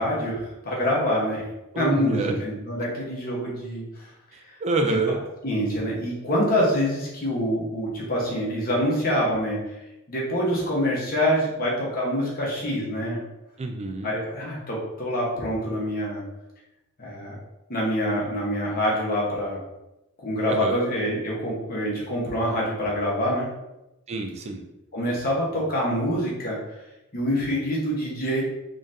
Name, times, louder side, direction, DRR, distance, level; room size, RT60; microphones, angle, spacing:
voice 1, 0.0-1.4 1.7-4.1 4.4-4.6 4.9-5.0 5.4-9.6 10.1-13.2 14.0-16.2 17.0-17.3 17.7-19.6 20.2-23.5 24.9-26.6 27.1-28.4, equal, 45° left, -4 dB, 1.2 m, -25 dB
voice 2, 1.7-2.4 4.3-5.2 13.6-14.1 20.5-20.8 24.1-24.6, right 3 dB, 30° right, 3 dB, 0.4 m, -27 dB
3.9 x 3.2 x 2.6 m, 0.94 s
head